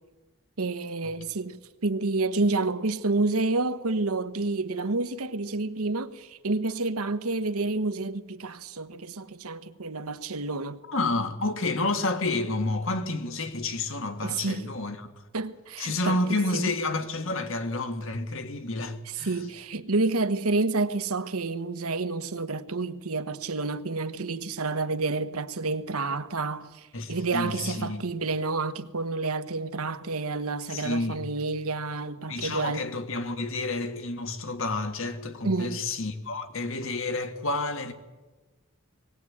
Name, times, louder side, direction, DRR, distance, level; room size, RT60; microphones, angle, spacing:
voice 1, 0.6-10.8 14.2-14.7 15.3-16.2 16.5-16.7 19.2-32.8 35.4-35.8, right 3 dB, 80° right, 1.1 m, -29 dB
voice 2, 10.9-15.2 15.8-19.4 26.9-28.0 30.7-31.2 32.3-37.9, left 2 dB, 60° left, 1.7 m, -30 dB
20.5 x 18.0 x 8.6 m
head